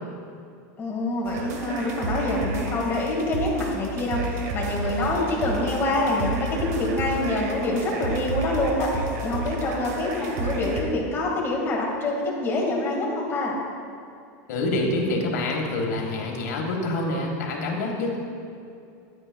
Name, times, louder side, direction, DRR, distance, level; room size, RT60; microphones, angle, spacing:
voice 1, 0.8-8.9 9.2-13.5, left 2 dB, 25° left, -2 dB, 1.7 m, -26 dB
sound 1, 1.2-10.8, right 2 dB, 75° right, 1.0 m, -31 dB
voice 2, 14.5-18.2, left 2 dB, 75° left, 0 dB, 1.5 m, -26 dB
10.5 x 8.7 x 2.3 m, 2.5 s
supercardioid pair, 135°, 9 cm